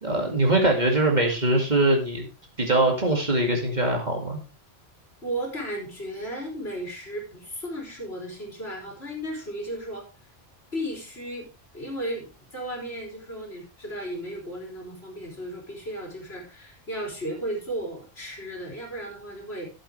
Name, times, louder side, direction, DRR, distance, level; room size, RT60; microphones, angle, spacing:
voice 1, 0.0-2.3 2.6-4.4, right 2 dB, 35° right, 1 dB, 2.5 m, -22 dB
voice 2, 5.2-10.1 10.7-19.7, right 1 dB, 55° left, -1 dB, 4.0 m, -35 dB
13.0 x 8.0 x 3.4 m, 0.31 s
omnidirectional pair, 1.2 m